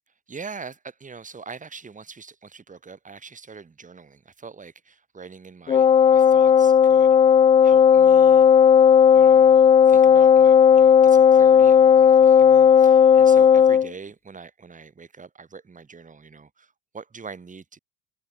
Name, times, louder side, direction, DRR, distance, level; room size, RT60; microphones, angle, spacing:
voice 1, 0.3-7.2 7.6-8.5 9.1-17.8, right 5 dB, 15° right, 4.1 m, -43 dB
Wind instrument woodwind instrument, 5.7-13.9, left 8 dB, 15° left, 0.3 m, -14 dB
supercardioid pair, 120°, 43 cm